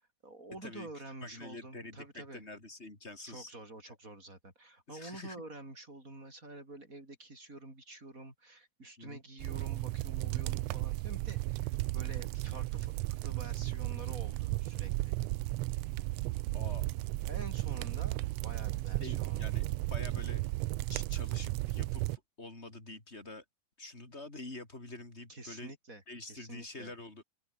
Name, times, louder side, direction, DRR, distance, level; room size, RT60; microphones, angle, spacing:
voice 1, 0.0-2.4 3.2-12.9 13.2-15.2 17.3-19.7 25.3-26.0 26.3-26.9, right 2 dB, 25° right, 7.1 m, -48 dB
voice 2, 1.2-3.5 4.9-5.4 9.0-9.2 16.5-16.9 19.0-19.6 19.9-20.4 20.9-23.4 23.8-25.7 26.1-27.2, left 2 dB, 20° left, 4.7 m, -46 dB
sound 1, 9.4-22.2, right 19 dB, 90° right, 1.4 m, -34 dB
open air
omnidirectional pair, 3.5 m